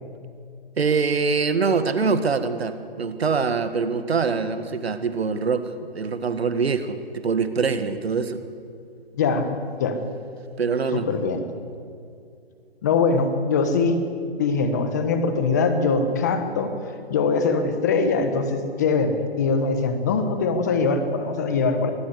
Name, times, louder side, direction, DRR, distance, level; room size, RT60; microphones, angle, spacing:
voice 1, 0.8-8.4 10.6-11.1, right 5 dB, 85° right, 10 dB, 1.9 m, -24 dB
voice 2, 9.1-9.5 9.8-10.0 10.9-11.4 12.8-14.0 14.4-16.7 17.1-21.9, left 4 dB, 15° left, 8 dB, 1.1 m, -22 dB
23.5 x 15.5 x 8.2 m, 2.4 s
hypercardioid pair, 175°, 31 cm